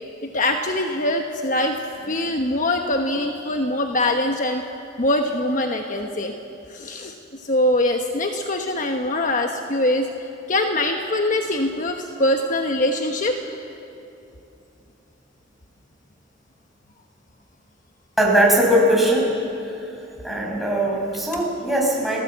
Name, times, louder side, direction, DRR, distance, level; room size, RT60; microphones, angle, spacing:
voice 1, 0.2-1.8 2.1-4.6 5.0-6.3 6.7-7.1 7.4-10.1 10.5-13.4, left 1 dB, 45° left, 4 dB, 1.2 m, -23 dB
voice 2, 18.2-19.3 19.6-19.8 20.2-22.2, right 1 dB, ahead, -3 dB, 5.9 m, -20 dB
29.0 x 18.0 x 8.2 m, 2.8 s
head